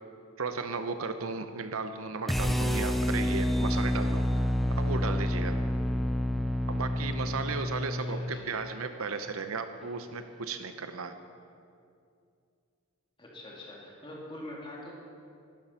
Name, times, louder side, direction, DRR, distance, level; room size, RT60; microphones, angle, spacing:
voice 1, 0.4-4.5 4.8-5.5 6.7-11.1, right 4 dB, 75° right, 8 dB, 0.8 m, -35 dB
sound 1, 2.3-8.4, left 1 dB, ahead, 0.3 m, -28 dB
voice 2, 7.8-8.6 13.2-14.9, left 1 dB, 25° left, -3 dB, 2.5 m, -44 dB
12.0 x 11.0 x 5.7 m, 2.4 s
head